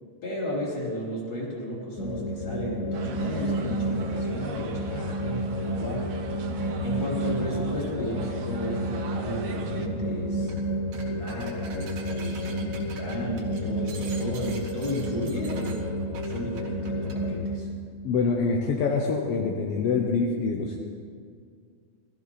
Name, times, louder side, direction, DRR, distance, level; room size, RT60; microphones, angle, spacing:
voice 1, 0.2-5.2 5.6-6.1 6.8-10.6 11.1-17.7, equal, 30° left, -5 dB, 3.5 m, -34 dB
sound 1, 2.0-17.6, equal, 85° left, 0.8 m, -31 dB
sound 2, 2.9-9.9, right 5 dB, 65° right, 1.6 m, -39 dB
sound 3, 10.4-10.6 10.9-17.2, right 4 dB, 80° right, 3.4 m, -45 dB
voice 2, 18.0-20.8, left 4 dB, 70° left, 1 dB, 1.5 m, -25 dB
18.5 x 14.0 x 4.2 m, 2.1 s
omnidirectional pair, 3.7 m